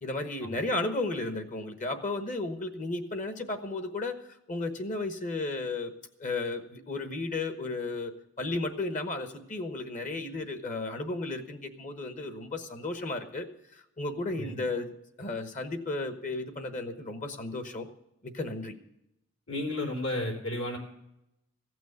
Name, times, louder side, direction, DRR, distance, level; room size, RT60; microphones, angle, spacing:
voice 1, 0.0-4.2 4.5-5.9 6.2-13.5 13.7-17.9 18.2-18.7, left 2 dB, 35° left, 8 dB, 1.1 m, -34 dB
voice 2, 14.3-14.6 19.5-20.8, left 1 dB, 75° left, 1 dB, 3.7 m, -33 dB
15.5 x 6.2 x 9.3 m, 0.84 s
head